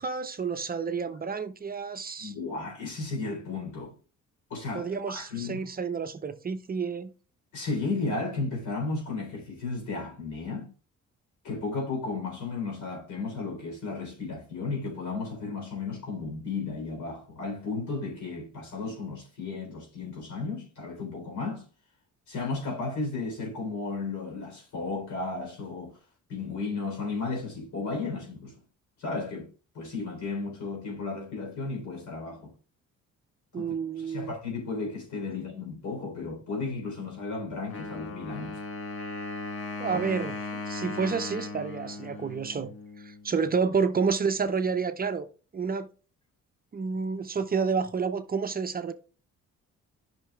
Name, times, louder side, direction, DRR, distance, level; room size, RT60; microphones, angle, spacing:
voice 1, 0.0-2.3 4.7-7.1 33.5-34.3 39.8-42.7 43.0-45.3 45.5-45.9 46.7-48.9, right 5 dB, 30° right, 0.6 m, -29 dB
voice 2, 2.2-3.9 4.5-5.7 7.5-10.7 11.4-21.6 22.3-26.0 26.3-28.6 29.0-32.5 33.5-38.6, left 3 dB, 70° left, 3.6 m, -34 dB
Wind instrument woodwind instrument, 37.7-43.3, left 3 dB, 45° left, 1.6 m, -37 dB
10.0 x 5.8 x 2.3 m
cardioid pair, 90°, 30 cm